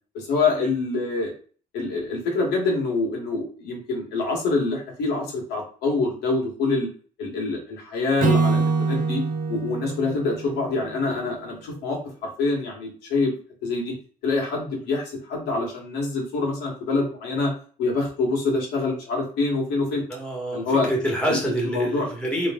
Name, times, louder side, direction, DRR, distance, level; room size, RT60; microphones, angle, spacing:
voice 1, 0.1-1.3 1.7-6.9 7.2-9.2 9.5-13.3 13.6-13.9 14.2-17.5 17.8-20.0 20.5-20.9 21.3-21.4 21.6-22.1, left 3 dB, 85° left, -1 dB, 1.6 m, -25 dB
Acoustic guitar / Strum, 8.2-11.5, right 4 dB, 55° right, 1.1 m, -25 dB
voice 2, 20.1-22.5, right 1 dB, 5° left, -1 dB, 1.4 m, -27 dB
3.1 x 3.1 x 3.7 m, 0.41 s
cardioid pair, 110°, 17 cm